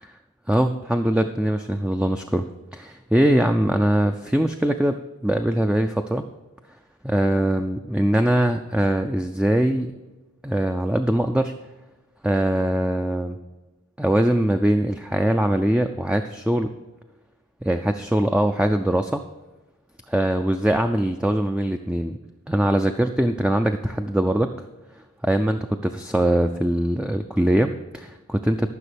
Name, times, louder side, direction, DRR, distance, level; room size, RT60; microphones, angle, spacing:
voice 1, 0.5-2.5 2.7-6.2 7.0-9.9 10.4-11.5 12.2-13.4 14.0-16.7 17.6-19.2 20.1-22.1 22.5-24.5 25.2-28.7, right 1 dB, 5° right, 6 dB, 0.3 m, -22 dB
14.0 x 6.2 x 5.0 m, 1.1 s
head